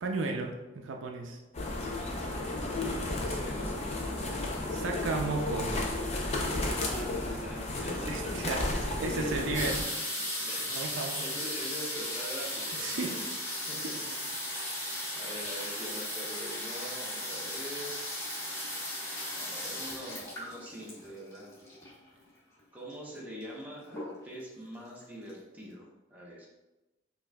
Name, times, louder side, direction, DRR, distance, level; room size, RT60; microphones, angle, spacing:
voice 1, 0.0-1.4 4.7-6.6 8.1-9.9 10.7-11.2 12.8-13.2 13.8-14.1 14.5-14.6, right 3 dB, 90° right, 3 dB, 0.4 m, -35 dB
sound 1, 1.5-9.8, left 2 dB, 35° left, 0.5 m, -33 dB
voice 2, 2.6-4.3 6.7-8.3 8.8-9.5 10.5-13.3 13.7-13.8 14.5-18.2 19.3-21.5 22.7-26.5, equal, 10° right, -5 dB, 0.8 m, -44 dB
sound 2, 9.5-22.1 22.9-23.0 23.2-23.6 23.9-24.5 25.0-25.1 25.3-25.4, left 1 dB, 20° left, 1.4 m, -36 dB
5.1 x 2.5 x 2.3 m, 1.0 s
head